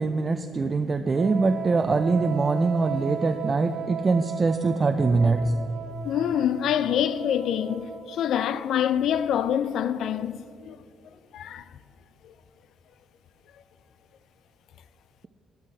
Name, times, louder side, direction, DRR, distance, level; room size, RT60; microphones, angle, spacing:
voice 1, 0.0-5.4, right 3 dB, 35° right, 0.4 m, -23 dB
Wind instrument woodwind instrument, 1.1-8.5, right 7 dB, 70° right, 0.9 m, -36 dB
voice 2, 6.0-10.8 11.3-11.6, left 9 dB, 75° left, 0.4 m, -26 dB
11.0 x 10.0 x 4.5 m
cardioid pair, 90°, 0 cm